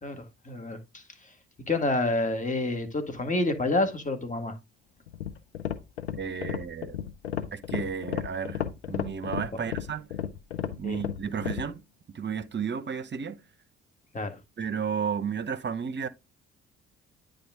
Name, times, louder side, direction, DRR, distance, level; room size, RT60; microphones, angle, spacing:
voice 1, 0.0-1.0 1.7-4.6 10.8-11.0 14.1-14.4, left 2 dB, 25° left, 1.9 m, -28 dB
sound 1, 5.1-11.7, left 9 dB, 90° left, 0.7 m, -33 dB
voice 2, 6.2-7.0 7.5-8.6 8.9-10.1 10.8-11.8 12.1-13.4 14.6-16.1, right 6 dB, 35° right, 0.9 m, -32 dB
9.7 x 3.8 x 3.6 m
hypercardioid pair, 50°, 32 cm